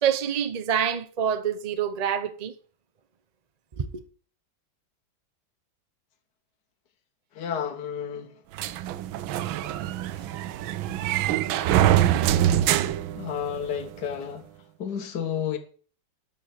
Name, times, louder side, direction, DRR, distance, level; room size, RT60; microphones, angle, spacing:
voice 1, 0.0-2.5 3.8-3.9, right 8 dB, 55° right, 0.4 m, -26 dB
voice 2, 7.3-8.3 13.1-14.5 14.8-15.6, left 8 dB, 60° left, 1.6 m, -31 dB
sound 1, 8.6-13.8, right 12 dB, 90° right, 1.5 m, -24 dB
12.5 x 4.6 x 8.2 m
omnidirectional pair, 2.1 m